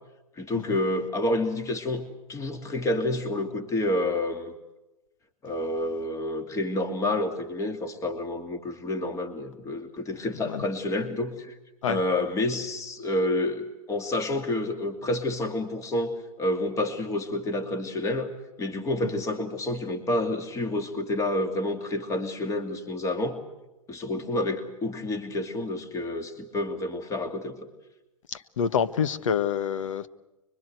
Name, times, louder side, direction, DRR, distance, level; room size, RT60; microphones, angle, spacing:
voice 1, 0.4-4.5 5.4-11.5 11.9-18.3 18.6-23.4 23.9-27.6, left 1 dB, 15° left, 2.8 m, -29 dB
voice 2, 28.3-30.1, left 7 dB, 60° left, 1.4 m, -27 dB
26.0 x 23.5 x 8.0 m
hypercardioid pair, 120°, 18 cm